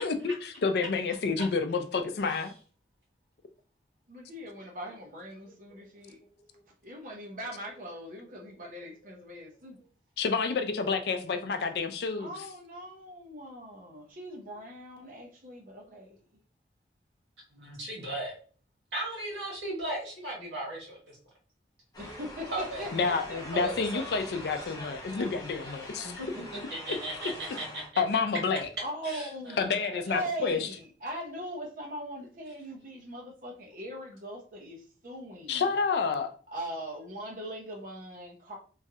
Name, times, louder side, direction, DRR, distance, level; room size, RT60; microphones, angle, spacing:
voice 1, 0.0-2.5 10.2-12.3 22.9-26.1 28.0-28.7 29.6-30.6 35.5-36.3, left 4 dB, 65° left, 0.4 m, -29 dB
voice 2, 4.1-6.2 6.8-9.8 12.2-16.2 22.0-24.0 28.8-29.6 30.1-35.7 36.5-38.6, equal, 50° right, 0.6 m, -40 dB
voice 3, 17.5-18.3 18.9-21.2 22.5-22.8 23.5-24.0 24.3-24.5 26.2-27.8 29.0-30.0, right 1 dB, 85° right, 1.5 m, -37 dB
sound 1, 21.9-27.9, left 1 dB, 20° left, 0.7 m, -43 dB
3.1 x 2.3 x 2.7 m
head